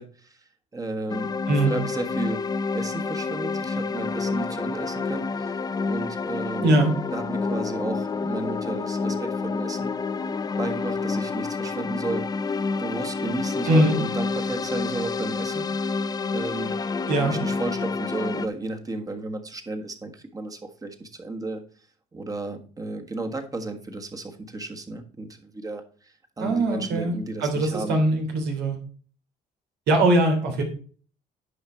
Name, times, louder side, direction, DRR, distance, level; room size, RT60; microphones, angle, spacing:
voice 1, 0.0-1.4 1.7-2.5 2.7-5.5 5.8-6.7 7.1-9.9 10.6-15.6 16.3-16.8 17.2-21.6 22.1-28.0, right 2 dB, 20° right, 6 dB, 1.5 m, -33 dB
sound 1, 1.1-18.5, left 4 dB, 25° left, 0.5 m, -29 dB
voice 2, 13.6-14.0 17.1-17.3 26.4-27.1 27.4-28.8 29.9-30.6, right 1 dB, 85° right, 3 dB, 3.0 m, -21 dB
10.0 x 5.7 x 4.4 m, 0.42 s
cardioid pair, 110°, 17 cm